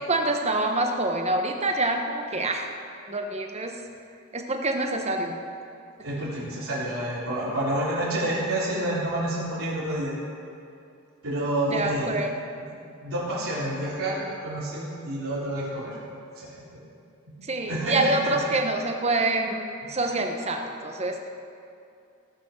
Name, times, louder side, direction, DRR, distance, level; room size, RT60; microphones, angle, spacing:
voice 1, 0.1-2.7 3.1-3.7 4.3-5.4 11.7-12.3 17.4-21.3, right 2 dB, 30° right, 3 dB, 1.1 m, -26 dB
voice 2, 6.0-10.1 11.2-12.1 12.5-12.6 13.0-16.0 16.3-16.7 17.4-18.3 20.0-20.1, right 1 dB, 90° right, -9 dB, 3.6 m, -29 dB
18.5 x 6.2 x 6.4 m, 2.5 s
head